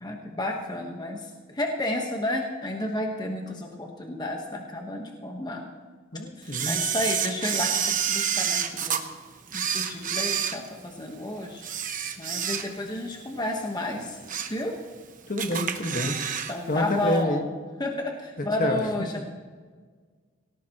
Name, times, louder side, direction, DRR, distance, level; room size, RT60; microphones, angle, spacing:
voice 1, 0.0-5.6 6.4-9.0 9.5-11.6 12.2-14.2 14.5-14.8 16.5-17.5 17.8-19.3, left 1 dB, 20° left, 2 dB, 1.2 m, -31 dB
voice 2, 6.1-6.8 15.3-16.2 16.7-17.4 18.6-18.8, left 1 dB, 45° left, 4 dB, 1.6 m, -27 dB
Camera, 6.5-9.0 9.5-11.1 11.6-13.0 13.3-13.5 14.0-14.6 14.9-15.0 15.4-16.5 16.8-16.9, right 8 dB, 45° right, 1.0 m, -28 dB
18.5 x 17.5 x 3.0 m, 1.5 s
head